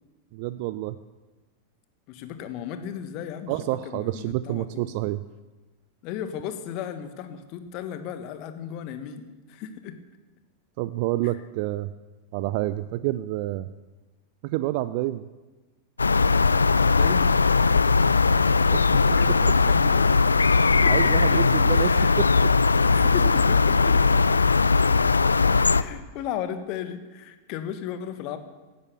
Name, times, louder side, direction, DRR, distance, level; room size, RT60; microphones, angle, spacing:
voice 1, 0.3-0.9 3.5-5.2 10.8-11.9 12.3-13.7 14.4-15.3 18.7-19.0 20.6-22.3, right 16 dB, 45° right, 15 dB, 0.5 m, -28 dB
voice 2, 2.1-4.9 6.0-10.0 16.8-18.5 19.1-20.5 20.8-21.4 21.7-22.1 22.8-24.2 25.6-28.4, left 9 dB, 40° left, 9 dB, 1.6 m, -36 dB
sound 1, 16.0-25.8, left 4 dB, 75° left, 0.5 m, -19 dB
17.0 x 11.5 x 7.0 m, 1.2 s
figure-of-eight pair, 90°, 0 cm